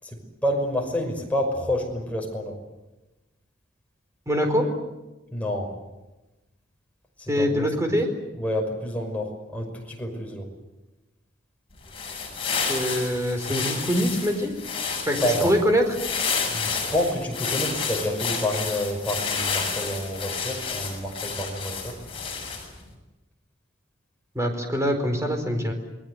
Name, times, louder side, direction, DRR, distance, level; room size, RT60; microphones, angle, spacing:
voice 1, 0.0-2.6 5.3-5.7 7.2-7.7 8.3-10.5 15.1-15.5 16.5-22.0, equal, 10° left, 0 dB, 5.8 m, -28 dB
voice 2, 4.3-4.7 7.3-8.1 12.7-14.5 15.1-15.8 24.3-25.7, equal, 15° right, 5 dB, 4.5 m, -24 dB
sound 1, 11.8-22.8, left 5 dB, 30° left, 6.5 m, -30 dB
28.5 x 20.5 x 8.1 m, 1.1 s
head